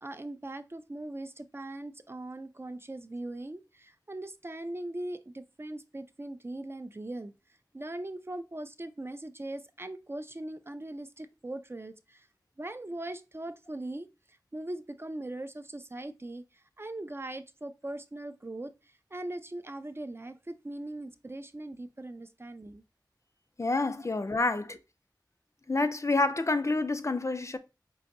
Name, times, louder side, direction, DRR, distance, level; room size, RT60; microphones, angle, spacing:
voice 1, 0.0-7.3 7.7-12.2 12.6-14.1 14.5-16.4 16.8-18.7 19.1-22.8, right 1 dB, 35° right, 0.3 m, -40 dB
voice 2, 23.6-24.8 25.7-27.6, left 3 dB, 40° left, 0.4 m, -28 dB
4.7 x 2.6 x 2.5 m
wide cardioid pair, 50°, 8 cm